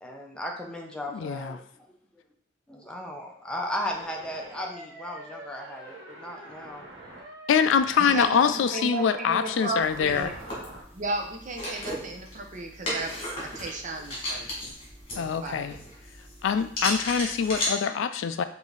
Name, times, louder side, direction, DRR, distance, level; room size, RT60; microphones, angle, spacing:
voice 1, 0.0-1.6 2.7-6.9, left 1 dB, 5° left, 0 dB, 0.6 m, -36 dB
voice 2, 1.1-1.6 7.5-10.3 15.2-15.7 16.4-18.4, left 7 dB, 70° left, 11 dB, 0.3 m, -24 dB
sound 1, 3.9-10.8, right 1 dB, 75° right, 1.3 m, -45 dB
voice 3, 8.0-10.3 10.9-14.7 15.1-15.8, right 2 dB, 40° right, 3 dB, 0.7 m, -35 dB
sound 2, 9.8-17.7, left 1 dB, 30° left, 2.0 m, -35 dB
5.0 x 2.7 x 3.9 m, 0.69 s
head